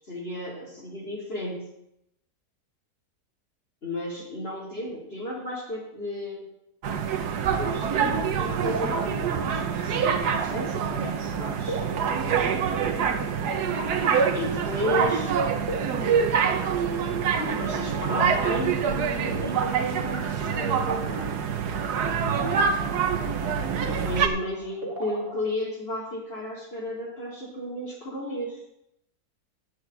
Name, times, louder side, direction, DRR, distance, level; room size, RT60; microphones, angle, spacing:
voice 1, 0.1-1.6 3.8-6.5 7.5-11.8 14.3-15.3 17.4-21.3 23.9-28.6, left 1 dB, 40° left, -8 dB, 3.3 m, -33 dB
sound 1, 6.8-24.3, right 7 dB, 85° right, 1.6 m, -26 dB
sound 2, 7.7-25.4, right 1 dB, 35° right, 2.1 m, -41 dB
11.5 x 6.4 x 8.0 m, 0.81 s
omnidirectional pair, 1.7 m